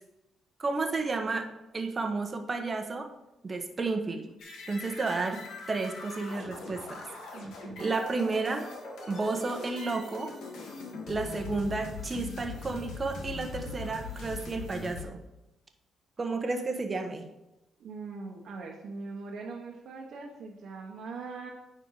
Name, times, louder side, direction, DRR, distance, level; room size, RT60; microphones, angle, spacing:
voice 1, 0.6-3.1 3.4-4.3 4.7-7.1 7.8-8.7 9.1-10.3 11.1-15.2 16.2-17.3, right 3 dB, 30° right, 5 dB, 1.1 m, -32 dB
sound 1, 4.4-15.0, left 4 dB, 75° left, 1.9 m, -41 dB
voice 2, 7.3-8.0 17.8-21.5, right 4 dB, 70° right, -2 dB, 1.3 m, -41 dB
9.5 x 4.5 x 4.9 m, 0.94 s
cardioid pair, 90°, 0 cm